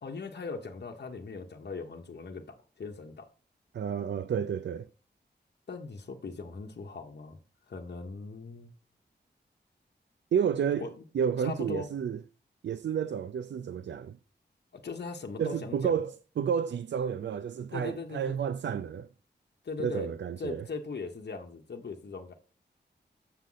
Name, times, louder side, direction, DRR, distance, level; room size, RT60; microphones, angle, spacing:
voice 1, 0.0-3.3 5.7-7.4 7.7-8.7 10.8-11.0 11.4-11.9 14.7-16.0 17.7-18.4 19.6-20.1 20.4-22.3, left 4 dB, 65° left, 1.1 m, -39 dB
voice 2, 3.7-4.9 10.3-10.9 11.1-12.2 12.6-14.2 15.4-19.1 19.8-20.6, right 7 dB, 80° right, 0.4 m, -31 dB
7.4 x 6.7 x 3.9 m
wide cardioid pair, 90°, 18 cm